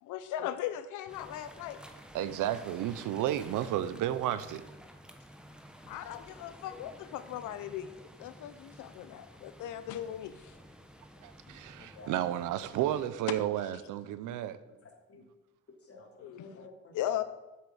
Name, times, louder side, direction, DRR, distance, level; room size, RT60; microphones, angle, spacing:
voice 1, 0.0-1.8 5.9-10.5 13.3-13.4 16.2-16.6 16.9-17.2, left 11 dB, 90° left, 0.6 m, -38 dB
sound 1, 1.1-13.1, equal, 5° right, 1.4 m, -52 dB
voice 2, 2.1-4.6 11.2-14.6, right 12 dB, 85° right, 0.8 m, -32 dB
voice 3, 11.8-12.2 14.2-14.4 14.8-15.2 15.8-17.2, left 3 dB, 50° left, 2.9 m, -52 dB
8.2 x 7.6 x 6.9 m
cardioid pair, 90°, 30 cm